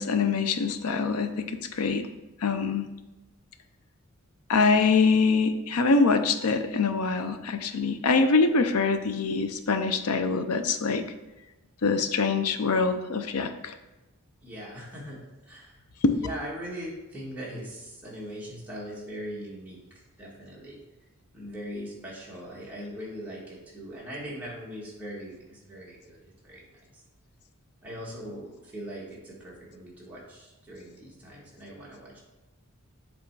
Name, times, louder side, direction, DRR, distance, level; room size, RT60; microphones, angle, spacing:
voice 1, 0.0-2.1 2.4-2.9 4.5-11.0 11.8-13.7 16.0-16.2, left 4 dB, 85° left, 9 dB, 0.6 m, -24 dB
voice 2, 14.4-15.2 15.5-15.8 16.2-19.8 20.2-20.8 21.3-26.6 27.8-32.2, equal, 5° right, -6 dB, 1.6 m, -40 dB
7.4 x 3.5 x 4.7 m, 1.1 s
head